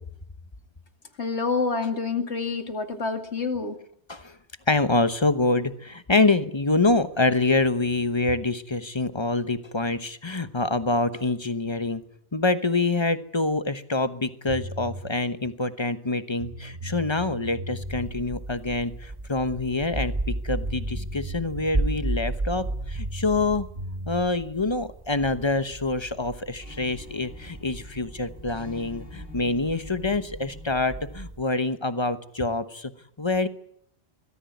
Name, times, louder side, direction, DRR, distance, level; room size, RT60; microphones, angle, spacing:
voice 1, 1.2-3.8, left 4 dB, 80° left, 6 dB, 2.6 m, -27 dB
voice 2, 4.7-12.0 12.3-23.7 24.1-32.9 33.2-33.5, left 3 dB, 25° left, 12 dB, 1.0 m, -26 dB
sound 1, 14.5-15.0 16.1-16.2 16.4-18.1 20.2-20.3 20.6-21.8 22.6-24.2, equal, 75° right, 5.0 m, -37 dB
sound 2, 17.8-31.4, right 2 dB, 20° right, 1.0 m, -34 dB
sound 3, 26.2-26.3 26.6-31.2, left 3 dB, 60° left, 4.1 m, -48 dB
21.5 x 14.5 x 9.4 m, 0.70 s
omnidirectional pair, 1.1 m